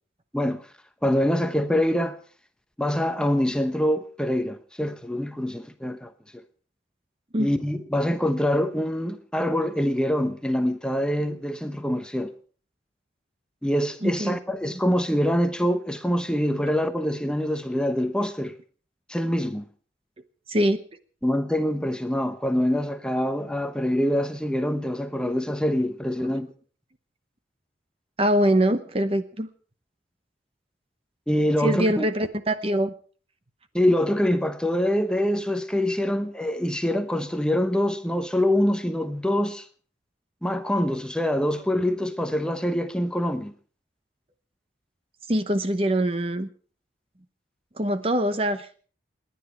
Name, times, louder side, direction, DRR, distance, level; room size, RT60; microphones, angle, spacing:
voice 1, 0.3-0.7 1.0-2.2 2.8-6.4 7.4-12.3 13.6-18.5 19.1-19.7 21.2-26.5 31.3-32.1 33.7-39.7 40.4-43.5, equal, 5° left, 1.0 m, -25 dB
voice 2, 14.0-14.4 20.5-20.8 28.2-29.5 31.6-32.9 45.3-46.5 47.8-48.8, right 1 dB, 30° right, 0.9 m, -23 dB
28.5 x 10.5 x 4.5 m
head